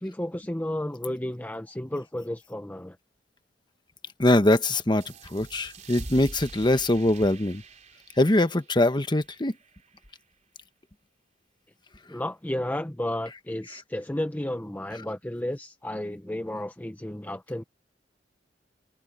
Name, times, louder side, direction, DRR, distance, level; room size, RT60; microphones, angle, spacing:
voice 1, 0.0-3.0 12.1-17.6, left 1 dB, 10° left, 0.7 m, -32 dB
voice 2, 4.2-7.6 8.2-9.5, left 1 dB, 25° left, 1.2 m, -22 dB
sound 1, 5.0-10.2, right 2 dB, 40° right, 3.2 m, -45 dB
open air
head